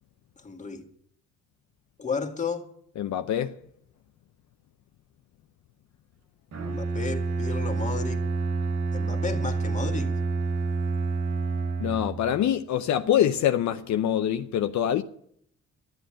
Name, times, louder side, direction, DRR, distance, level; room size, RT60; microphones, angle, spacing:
voice 1, 0.4-0.8 2.0-2.7 6.6-8.2 8.9-10.1, left 5 dB, 25° left, 1.9 m, -33 dB
voice 2, 3.0-3.5 11.8-15.0, left 10 dB, 70° left, 0.7 m, -25 dB
Bowed string instrument, 6.5-12.4, right 4 dB, 80° right, 2.9 m, -28 dB
12.5 x 7.9 x 9.8 m
cardioid pair, 90°, 30 cm